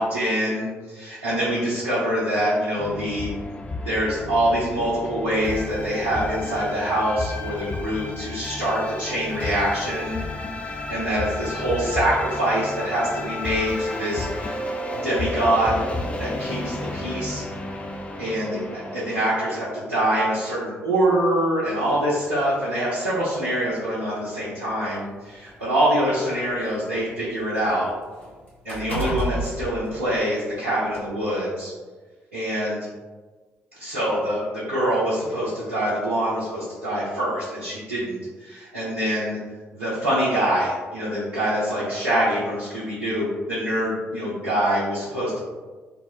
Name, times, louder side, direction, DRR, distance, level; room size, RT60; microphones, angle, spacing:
voice 1, 0.0-3.3 3.8-10.2 10.6-14.6 14.9-15.8 16.2-17.5 18.2-27.9 28.6-31.7 32.3-32.9 33.7-39.4 39.7-45.4, right 1 dB, 85° right, -11 dB, 0.6 m, -25 dB
sound 1, 2.8-19.2, left 2 dB, 20° left, 0.4 m, -32 dB
sound 2, 21.9-22.1 23.1-23.2 23.7-23.8 24.7-26.7 27.1-30.5 30.9-31.1, right 1 dB, 85° left, 0.6 m, -33 dB
2.7 x 2.0 x 3.6 m, 1.3 s
figure-of-eight pair, 40°, 6 cm